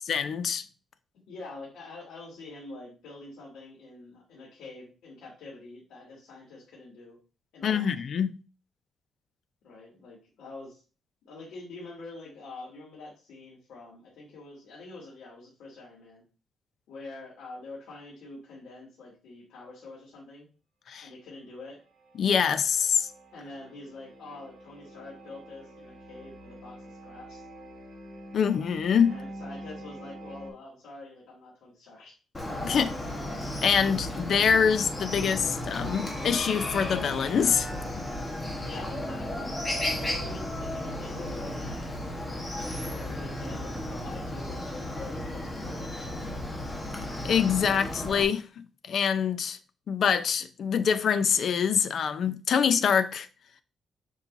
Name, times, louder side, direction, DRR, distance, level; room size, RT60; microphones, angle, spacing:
voice 1, 0.1-0.6 7.6-8.4 20.9-21.1 22.2-23.1 28.3-29.1 32.6-32.9 33.6-37.7 47.2-49.6 49.9-53.3, left 7 dB, 50° left, 0.6 m, -25 dB
voice 2, 1.1-7.2 7.5-8.0 9.6-10.8 11.2-16.2 16.9-20.5 21.0-21.8 23.3-27.4 29.0-32.1 38.6-39.6 39.9-42.4 42.9-46.4, left 2 dB, 85° left, 2.9 m, -46 dB
sound 1, 22.0-30.5, right 1 dB, 30° right, 3.9 m, -45 dB
Chicken rooster, 32.3-48.2, left 1 dB, 15° left, 1.3 m, -34 dB
7.2 x 5.5 x 2.7 m
cardioid pair, 160°, 0 cm